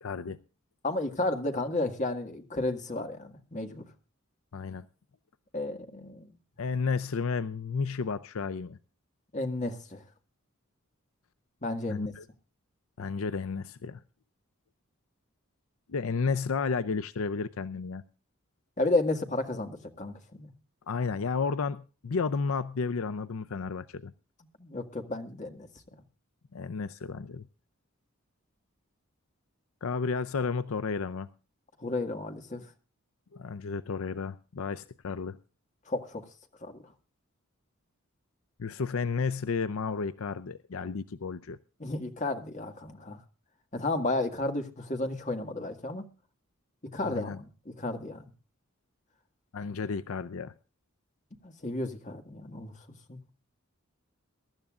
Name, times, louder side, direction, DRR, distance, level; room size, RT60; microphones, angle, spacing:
voice 1, 0.0-0.4 4.5-4.9 6.6-8.8 11.9-12.2 13.0-14.0 15.9-18.0 20.9-24.1 26.5-27.4 29.8-31.3 33.3-35.4 38.6-41.6 47.0-47.4 49.5-50.5, left 5 dB, 75° left, 0.5 m, -32 dB
voice 2, 0.8-3.8 5.5-6.3 9.3-10.0 11.6-12.1 18.8-20.5 24.6-25.7 31.8-32.6 35.9-36.2 36.6-36.8 41.8-43.2 43.7-46.0 46.9-48.3 51.4-52.7 53.1-53.2, left 2 dB, 35° left, 1.9 m, -32 dB
23.0 x 12.5 x 2.5 m
head